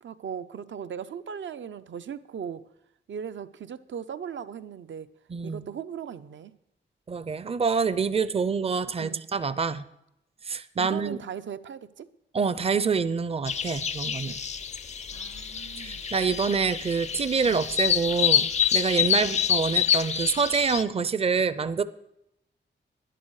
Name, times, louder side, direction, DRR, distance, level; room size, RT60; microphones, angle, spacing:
voice 1, 0.0-2.6 3.1-5.1 5.4-6.5 9.0-9.3 10.8-12.1 15.1-16.1 17.4-17.6 19.2-19.4, right 8 dB, 75° right, 12 dB, 0.6 m, -38 dB
voice 2, 5.3-5.7 7.1-9.8 10.5-11.2 12.3-14.4 15.8-21.8, right 5 dB, 30° right, 15 dB, 0.5 m, -26 dB
sound 1, 13.5-20.8, left 8 dB, 35° left, 0.4 m, -27 dB
12.0 x 11.0 x 4.7 m, 0.83 s
wide cardioid pair, 145°, 19 cm